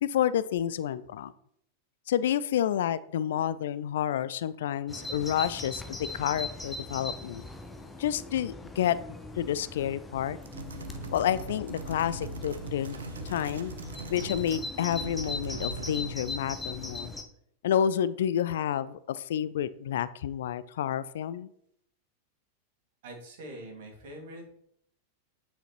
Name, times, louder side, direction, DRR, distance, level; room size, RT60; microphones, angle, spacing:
voice 1, 0.0-1.3 2.1-7.4 8.0-9.0 9.4-10.4 11.1-13.0 13.2-13.7 14.1-17.1 17.6-21.5, left 10 dB, 60° left, 15 dB, 0.3 m, -29 dB
Bird vocalization bird call bird song, 4.9-17.2, left 2 dB, 10° left, 0.8 m, -40 dB
sound 1, 10.4-14.7 14.9-16.2, right 3 dB, 70° right, 0.7 m, -40 dB
voice 2, 23.0-24.5, right 1 dB, 55° right, 1 dB, 2.2 m, -44 dB
8.8 x 5.0 x 3.0 m, 0.68 s
figure-of-eight pair, 90°, 0 cm